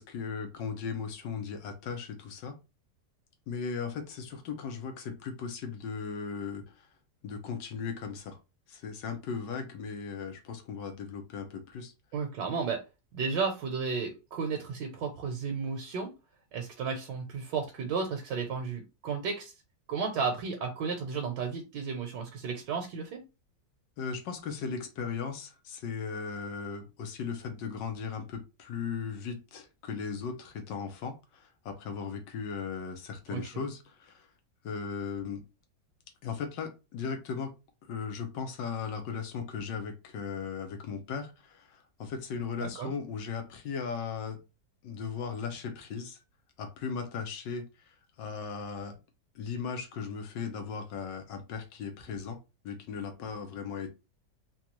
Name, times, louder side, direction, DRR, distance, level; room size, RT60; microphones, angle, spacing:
voice 1, 0.0-2.6 3.5-6.9 7.2-8.4 8.7-11.9 24.0-34.3 34.6-35.4 36.2-37.5 37.8-44.4 44.8-46.2 46.6-47.6 48.2-49.0 49.3-52.4 52.6-53.9, left 5 dB, 85° left, 1.4 m, -37 dB
voice 2, 12.1-12.8 13.1-16.1 16.5-19.5 19.9-23.2 33.3-33.6 42.6-42.9, right 5 dB, 75° right, 1.3 m, -33 dB
3.9 x 2.3 x 2.9 m
omnidirectional pair, 1.9 m